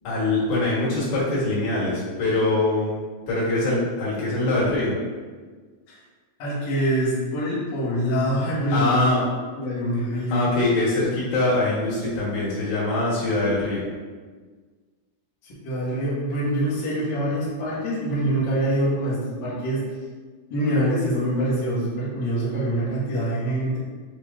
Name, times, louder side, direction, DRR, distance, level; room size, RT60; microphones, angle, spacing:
voice 1, 0.0-3.0 3.3-4.9 8.7-9.2 10.3-13.8, left 2 dB, 70° left, -7 dB, 2.8 m, -23 dB
voice 2, 6.4-9.2 9.5-10.5 15.6-19.8 20.5-23.8, right 1 dB, 85° left, -9 dB, 0.9 m, -25 dB
6.1 x 3.1 x 2.4 m, 1.4 s
omnidirectional pair, 4.5 m